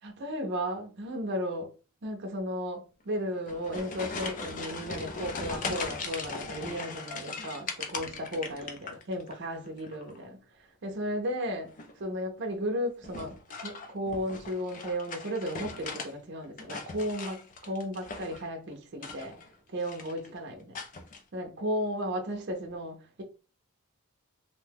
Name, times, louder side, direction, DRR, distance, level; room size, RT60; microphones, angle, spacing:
voice 1, 0.0-1.7 2.0-11.7 12.0-13.4 13.6-19.4 19.7-20.7 21.3-23.2, equal, 50° right, 0.5 m, -34 dB
sound 1, 3.3-9.4 9.7-10.2 11.6-12.0 13.0-16.1 16.4-18.5 18.9-19.5 19.8-20.3 20.7-21.2, left 4 dB, 35° left, 0.4 m, -39 dB
2.6 x 2.1 x 3.3 m
head